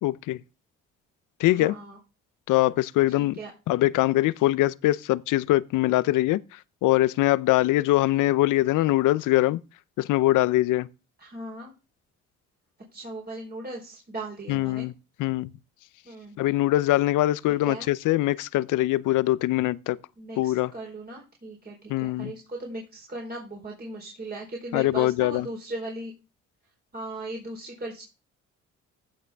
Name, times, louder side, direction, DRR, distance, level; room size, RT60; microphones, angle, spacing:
voice 1, 0.0-0.4 1.4-1.8 2.5-3.4 3.7-9.6 10.0-10.9 14.5-14.9 15.2-15.5 16.4-20.0 20.4-20.7 21.9-22.3 24.7-25.5, left 16 dB, 90° left, 0.6 m, -23 dB
voice 2, 1.5-2.0 3.1-3.5 11.2-11.7 12.9-14.9 16.0-16.4 17.5-17.9 20.2-26.1 26.9-28.0, right 2 dB, 30° right, 4.2 m, -38 dB
15.5 x 6.4 x 3.5 m
cardioid pair, 90°, 30 cm